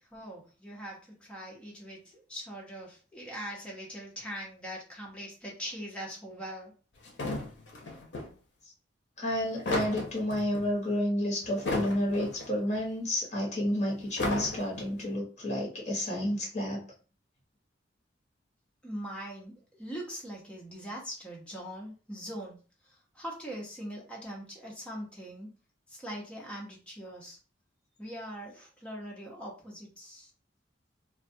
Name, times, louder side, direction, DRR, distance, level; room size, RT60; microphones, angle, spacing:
voice 1, 0.0-6.7 18.8-22.6 22.8-25.5 25.9-27.4 28.0-30.3, equal, 5° left, -3 dB, 0.6 m, -42 dB
sound 1, 7.0-8.3 9.3-10.7 11.4-12.5 12.7-12.8 14.0-15.0, left 2 dB, 65° left, 0.6 m, -34 dB
voice 2, 9.2-16.8, left 1 dB, 35° left, -2 dB, 0.9 m, -30 dB
2.3 x 2.2 x 2.6 m, 0.37 s
head